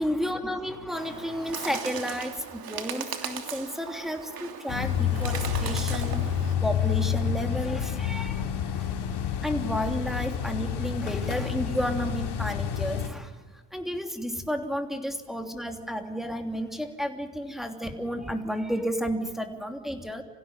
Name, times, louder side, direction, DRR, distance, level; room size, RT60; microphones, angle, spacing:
voice 1, 0.0-6.3 6.6-8.4 8.7-8.9 9.4-20.2, equal, ahead, 4 dB, 3.1 m, -32 dB
Bird, 0.9-6.5, right 7 dB, 45° right, 3.2 m, -38 dB
sound 1, 4.7-13.1, left 8 dB, 55° left, 3.5 m, -29 dB
26.5 x 16.0 x 9.2 m, 1.3 s
supercardioid pair, 75°, 48 cm